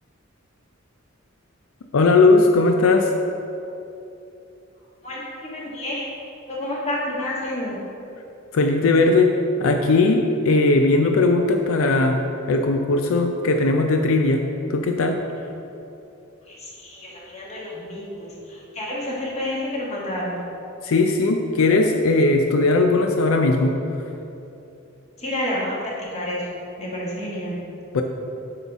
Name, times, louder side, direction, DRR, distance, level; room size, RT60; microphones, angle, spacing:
voice 1, 1.9-3.1 8.5-9.3 9.6-12.2 12.5-14.4 14.7-15.2 20.8-23.7 27.9-28.0, left 3 dB, 85° left, 4 dB, 0.5 m, -18 dB
voice 2, 5.0-6.0 6.5-7.8 16.5-20.4 25.2-26.4 26.8-27.6, left 1 dB, 35° left, -5 dB, 1.6 m, -29 dB
8.0 x 5.6 x 3.6 m, 2.8 s
head